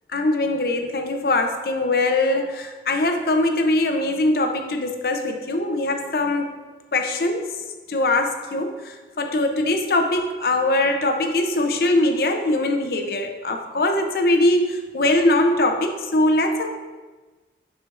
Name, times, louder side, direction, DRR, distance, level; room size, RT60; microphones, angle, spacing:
voice 1, 0.1-6.5 6.9-7.5 7.9-16.7, left 2 dB, 55° left, 4 dB, 0.6 m, -22 dB
9.1 x 4.3 x 2.5 m, 1.3 s
head